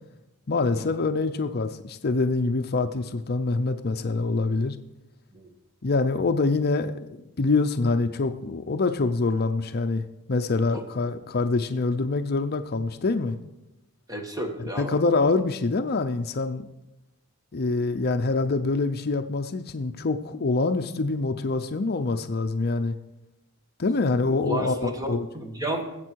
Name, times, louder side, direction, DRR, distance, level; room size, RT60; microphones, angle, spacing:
voice 1, 0.5-4.8 5.8-13.4 14.8-16.7 17.5-22.9 23.8-25.3, left 3 dB, 45° left, 8 dB, 0.6 m, -25 dB
voice 2, 14.1-15.0 24.4-26.0, right 1 dB, 15° right, 4 dB, 1.5 m, -32 dB
19.5 x 8.2 x 4.6 m, 0.93 s
head